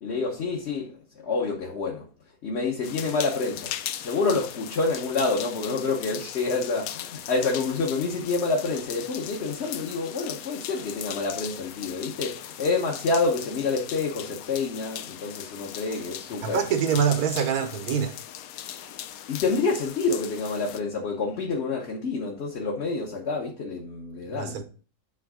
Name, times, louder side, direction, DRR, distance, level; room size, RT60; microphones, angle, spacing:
voice 1, 0.0-2.1 2.4-3.7 4.0-16.6 18.7-19.0 19.3-24.6, left 3 dB, 50° left, 1.2 m, -28 dB
sound 1, 2.8-20.8, left 11 dB, 75° left, 1.0 m, -39 dB
voice 2, 16.4-18.2 24.3-24.6, right 7 dB, 80° right, 1.4 m, -25 dB
8.2 x 3.6 x 4.9 m
omnidirectional pair, 1.6 m